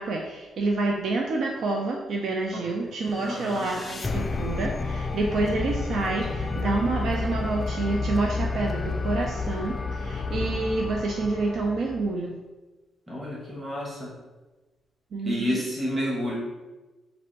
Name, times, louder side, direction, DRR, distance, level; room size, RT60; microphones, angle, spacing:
voice 1, 0.0-12.4 15.1-15.6, right 3 dB, 65° right, 0 dB, 0.5 m, -28 dB
sound 1, 3.0-12.2, left 3 dB, 30° left, 0.4 m, -31 dB
voice 2, 3.3-3.7 13.1-14.1 15.2-16.4, equal, 20° right, -4 dB, 1.3 m, -30 dB
4.1 x 2.6 x 4.5 m, 1.2 s
cardioid pair, 75°, 0 cm